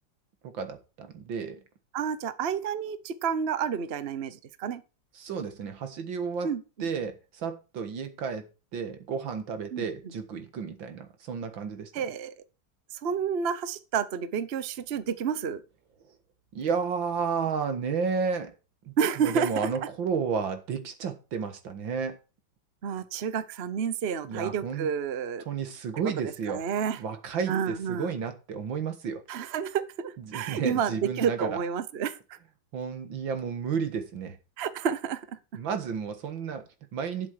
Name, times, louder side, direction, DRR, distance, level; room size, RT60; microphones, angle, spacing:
voice 1, 0.4-1.6 5.2-6.5 6.8-8.5 8.7-11.9 16.5-18.5 18.9-22.2 24.2-24.9 25.5-26.6 27.0-29.2 30.2-31.6 32.7-34.4 35.5-37.3, right 6 dB, 80° right, 2.3 m, -32 dB
voice 2, 1.9-4.8 6.4-6.9 9.7-10.1 11.9-12.3 12.9-15.6 19.0-19.7 22.8-25.4 26.0-27.0 27.5-28.2 29.3-32.2 34.6-35.4, right 7 dB, 45° right, 0.9 m, -30 dB
12.0 x 7.4 x 4.8 m
omnidirectional pair, 2.1 m